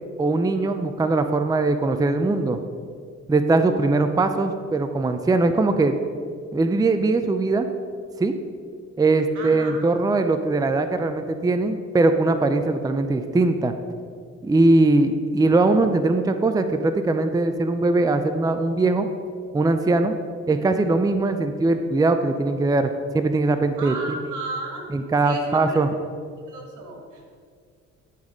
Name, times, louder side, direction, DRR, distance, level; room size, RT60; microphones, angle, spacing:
voice 1, 0.2-2.6 3.3-6.0 6.5-7.7 8.2-8.3 9.0-13.7 14.4-19.1 19.5-20.1 20.5-23.9 24.9-25.9, right 2 dB, 10° right, 8 dB, 0.5 m, -21 dB
voice 2, 9.3-9.9 23.8-24.8 25.2-25.8 26.4-27.3, right 3 dB, 80° right, 1 dB, 2.0 m, -34 dB
11.5 x 4.2 x 6.3 m, 2.1 s
cardioid pair, 90°, 30 cm